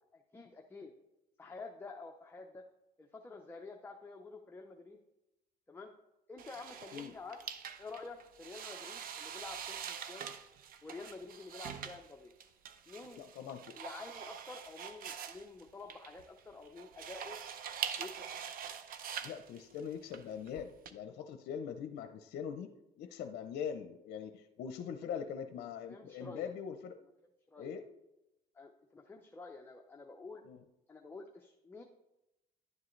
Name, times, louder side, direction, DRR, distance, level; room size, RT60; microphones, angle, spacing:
voice 1, 0.1-0.9 1.4-2.6 3.0-5.0 5.7-5.9 6.3-7.5 7.8-10.3 10.8-12.3 12.9-13.2 13.8-17.4 18.0-18.3 25.1-25.2 25.9-26.5 27.5-27.7 28.5-30.4 30.9-31.8, left 3 dB, 15° left, 2 dB, 0.7 m, -49 dB
sound 1, 6.4-20.9, right 8 dB, 60° right, 0.7 m, -44 dB
voice 2, 13.2-13.8 19.2-22.7 23.0-27.0 27.6-27.8 30.4-30.6, left 7 dB, 70° left, 7 dB, 0.6 m, -42 dB
11.0 x 7.4 x 3.2 m, 0.92 s
cardioid pair, 110°, 17 cm